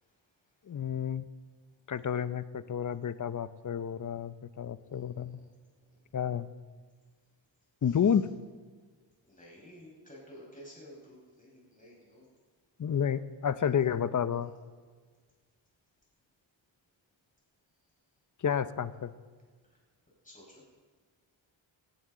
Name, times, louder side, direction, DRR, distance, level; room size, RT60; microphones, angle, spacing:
voice 1, 0.7-1.3 1.9-5.4 6.1-6.5 7.8-8.3 12.8-14.5 18.4-19.1, left 8 dB, 40° left, 13 dB, 0.8 m, -30 dB
voice 2, 4.9-5.3 6.1-6.2 7.8-8.2 9.3-12.3 20.2-20.6, equal, 15° left, -3 dB, 5.4 m, -53 dB
17.0 x 16.5 x 3.9 m, 1.5 s
cardioid pair, 85°, 46 cm